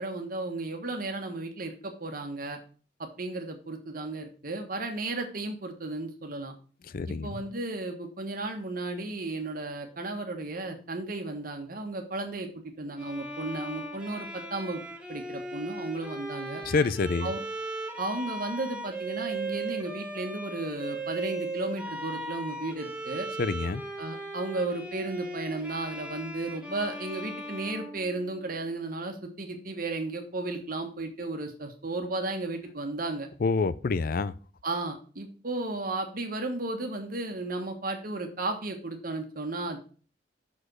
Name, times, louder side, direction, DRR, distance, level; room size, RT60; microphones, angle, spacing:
voice 1, 0.0-2.6 3.0-6.5 7.1-12.5 12.8-14.8 15.1-16.6 17.2-17.4 18.0-23.3 24.0-33.3 34.6-39.8, right 2 dB, 55° right, 1.5 m, -34 dB
voice 2, 6.9-7.3 16.6-17.3 23.4-23.8 33.4-34.3, left 4 dB, 55° left, 0.4 m, -27 dB
Bowed string instrument, 13.0-28.7, right 2 dB, 5° right, 1.2 m, -38 dB
6.2 x 5.1 x 6.2 m
head